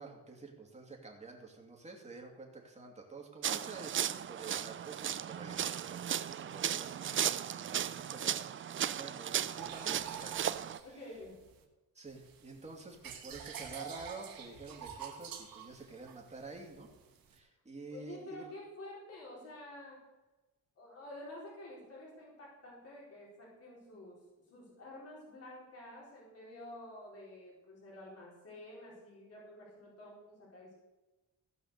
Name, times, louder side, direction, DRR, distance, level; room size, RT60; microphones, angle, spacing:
voice 1, 0.0-8.5 8.9-11.2 11.9-16.9 17.3-18.6, right 3 dB, 20° right, 0 dB, 2.6 m, -49 dB
sound 1, 3.4-10.8, right 9 dB, 35° right, 0.4 m, -36 dB
voice 2, 7.5-8.4 10.8-11.4 17.9-20.0 20.8-24.2 24.5-30.7, left 1 dB, 45° left, -5 dB, 4.1 m, -50 dB
sound 2, 9.6-11.6 12.1-17.4, right 7 dB, 80° right, 1.8 m, -47 dB
16.0 x 5.7 x 6.6 m, 1.1 s
cardioid pair, 115°, 34 cm